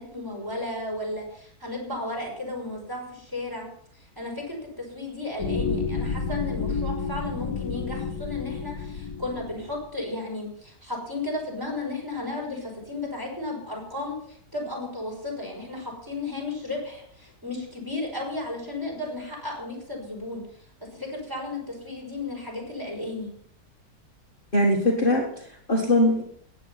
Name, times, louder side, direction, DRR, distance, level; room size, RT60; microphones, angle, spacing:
voice 1, 0.0-3.7 3.9-20.6 20.9-23.3, left 2 dB, 10° right, -1 dB, 5.7 m, -34 dB
sound 1, 5.4-9.9, left 5 dB, 75° left, 1.7 m, -30 dB
voice 2, 24.5-26.2, left 1 dB, 35° left, -1 dB, 1.8 m, -22 dB
15.0 x 10.0 x 5.7 m, 0.65 s
omnidirectional pair, 1.7 m